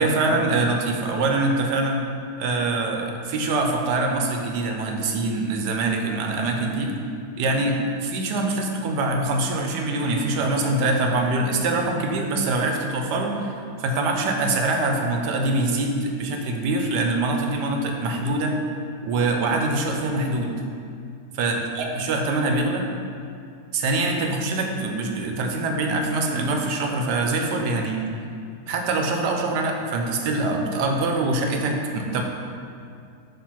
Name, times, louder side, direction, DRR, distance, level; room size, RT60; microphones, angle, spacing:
voice 1, 0.0-2.0 2.4-6.9 7.4-13.5 13.8-18.6 19.0-20.5 21.4-22.9 23.7-28.0 28.7-32.2, right 2 dB, 85° right, 2 dB, 1.3 m, -24 dB
6.7 x 3.2 x 5.7 m, 2.4 s
omnidirectional pair, 1.8 m